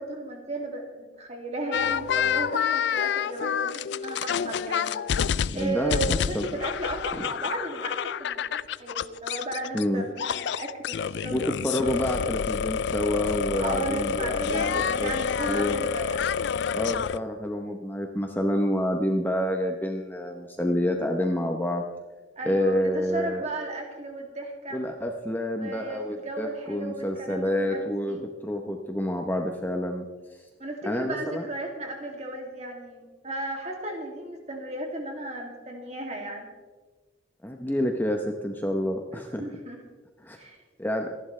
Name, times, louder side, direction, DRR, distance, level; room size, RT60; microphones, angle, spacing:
voice 1, 0.0-4.9 5.5-11.8 13.6-16.4 22.4-24.8 25.6-28.3 30.6-36.5 39.1-39.8 40.4-40.6, right 2 dB, 35° right, 1 dB, 2.5 m, -35 dB
sound 1, 1.7-9.8 10.2-17.2, left 7 dB, 60° left, 0.3 m, -28 dB
voice 2, 5.5-6.4 9.7-10.0 11.3-15.1 15.5-15.7 16.7-21.8 22.4-23.4 24.7-30.0 30.3-30.5 30.8-31.5 37.4-39.4 40.2-40.4 40.8-41.1, left 1 dB, 10° left, 3 dB, 0.8 m, -28 dB
26.0 x 11.0 x 3.3 m, 1.3 s
head